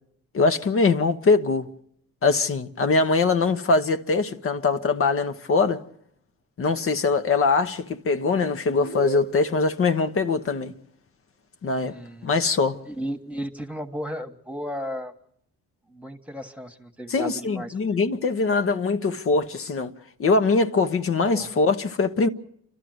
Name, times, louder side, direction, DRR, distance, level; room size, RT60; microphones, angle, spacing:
voice 1, 0.3-1.7 2.2-5.8 6.6-10.7 11.6-11.9 12.2-12.8 17.1-19.9 20.2-22.3, left 4 dB, 45° left, 1.1 m, -22 dB
sound 1, 8.8-9.8, right 8 dB, 85° right, 1.0 m, -35 dB
voice 2, 11.8-12.3 12.8-15.1 15.9-17.8 21.3-21.5, equal, 5° right, 1.5 m, -34 dB
29.0 x 12.5 x 7.9 m
cardioid pair, 90°, 30 cm